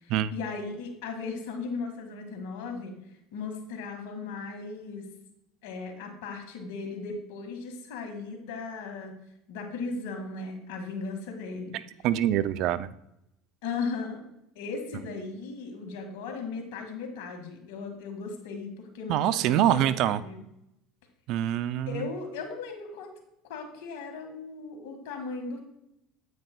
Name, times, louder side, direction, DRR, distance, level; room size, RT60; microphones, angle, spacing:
voice 1, 0.0-3.0 3.3-5.1 5.6-9.2 9.5-11.8 13.6-14.2 14.6-20.4 21.9-23.1 23.5-25.6, left 4 dB, 75° left, 3 dB, 1.9 m, -37 dB
voice 2, 12.0-12.9 19.1-20.2 21.3-22.1, right 12 dB, 60° right, 15 dB, 0.4 m, -25 dB
9.4 x 9.0 x 2.3 m, 0.82 s
supercardioid pair, 95°, 0 cm